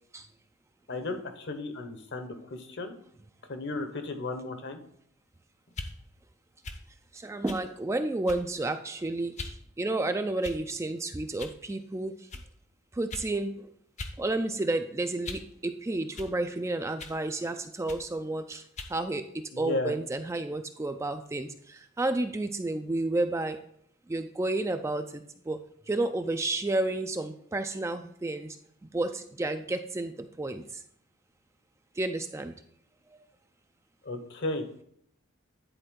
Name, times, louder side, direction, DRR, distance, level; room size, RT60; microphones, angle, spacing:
voice 1, 0.9-2.9 3.5-4.8 19.5-19.9 34.0-34.6, left 2 dB, 55° left, 8 dB, 1.0 m, -34 dB
sound 1, 5.7-5.9 6.6-6.8 7.5-7.7 8.3-8.6 9.4-9.6 10.4-10.8 11.4-11.6 12.3-12.5 13.1-13.3 14.0-14.2 14.5-15.5 16.2-16.3 17.0-17.2 17.9-18.1 18.8-19.0, left 3 dB, 35° left, 0.7 m, -41 dB
voice 2, 7.1-12.1 13.0-13.7 14.2-18.6 18.9-19.2 19.6-23.6 24.1-25.6 25.9-28.6 28.9-30.1 30.4-30.6 32.0-32.5, right 2 dB, 15° right, 8 dB, 0.3 m, -31 dB
10.0 x 4.4 x 3.7 m, 0.68 s
head